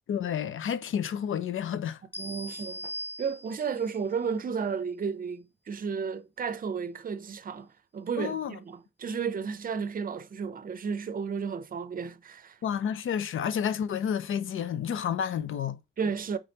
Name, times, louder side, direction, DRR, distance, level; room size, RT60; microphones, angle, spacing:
voice 1, 0.1-2.0 8.2-8.5 12.6-15.8, left 8 dB, 80° left, 0.5 m, -30 dB
sound 1, 2.1-3.9, equal, 10° left, 0.5 m, -39 dB
voice 2, 2.2-2.9 3.2-12.6 16.0-16.4, right 6 dB, 45° right, 0.5 m, -33 dB
5.1 x 3.3 x 2.8 m
wide cardioid pair, 105°, 21 cm